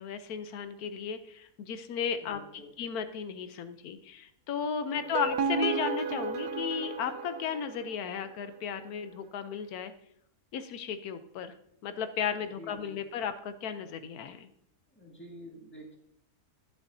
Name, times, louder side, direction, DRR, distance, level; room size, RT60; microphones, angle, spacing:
voice 1, 0.0-2.4 2.8-9.9 10.5-11.5 11.8-14.5, left 7 dB, 85° left, 10 dB, 1.2 m, -35 dB
voice 2, 2.2-2.8 5.1-5.3 12.4-13.2 14.9-16.0, equal, 10° left, -1 dB, 1.8 m, -49 dB
sound 1, 4.9-8.1, right 5 dB, 80° right, 1.3 m, -33 dB
11.0 x 9.7 x 2.7 m, 0.73 s
omnidirectional pair, 1.6 m